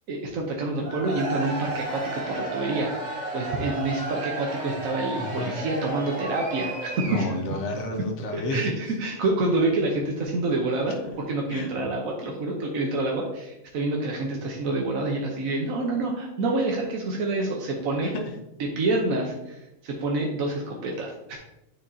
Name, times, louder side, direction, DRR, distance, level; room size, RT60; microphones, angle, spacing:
voice 1, 0.1-7.2 8.3-10.9 11.3-18.1 18.8-21.4, right 2 dB, 85° right, 0 dB, 1.3 m, -27 dB
Cheering / Crowd, 0.8-7.5, right 2 dB, 35° right, 1.5 m, -33 dB
voice 2, 5.2-5.6 7.1-8.7 11.5-11.7 18.0-18.2, left 1 dB, 80° left, 2 dB, 1.4 m, -31 dB
9.0 x 4.8 x 2.7 m, 0.88 s
omnidirectional pair, 1.4 m